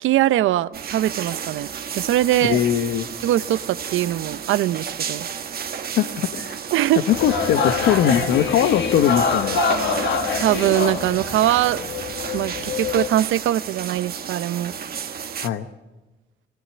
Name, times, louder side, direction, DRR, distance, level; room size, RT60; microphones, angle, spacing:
voice 1, 0.0-2.6 3.2-5.3 6.7-7.0 10.4-11.8 12.3-14.7, right 13 dB, 80° right, 15 dB, 0.7 m, -22 dB
sound 1, 0.7-15.5, right 7 dB, 50° right, 1.5 m, -32 dB
voice 2, 2.4-3.1 6.0-6.6 7.1-9.7 15.4-15.7, left 10 dB, 80° left, 9 dB, 1.0 m, -21 dB
sound 2, 7.1-13.1, left 5 dB, 65° left, 1.7 m, -25 dB
19.5 x 18.0 x 9.4 m, 1.1 s
cardioid pair, 90°, 20 cm